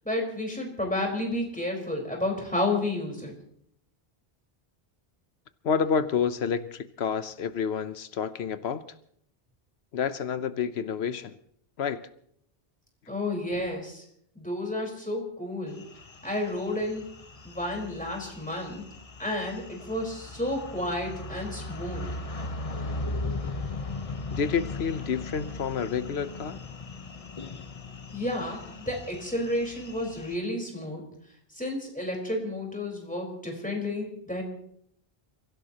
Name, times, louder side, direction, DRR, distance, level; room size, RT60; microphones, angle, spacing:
voice 1, 0.0-3.3 13.1-14.0 14.3-15.8 16.2-17.1 17.4-18.8 19.2-22.1 28.1-31.0 31.5-34.4, left 1 dB, 10° left, 0 dB, 4.4 m, -31 dB
voice 2, 5.6-8.8 9.9-11.4 11.8-12.0 24.3-26.6, left 6 dB, 90° left, 12 dB, 1.1 m, -29 dB
sound 1, 15.8-30.4, left 2 dB, 35° left, 1.0 m, -38 dB
30.0 x 16.0 x 2.9 m, 0.69 s
omnidirectional pair, 1.0 m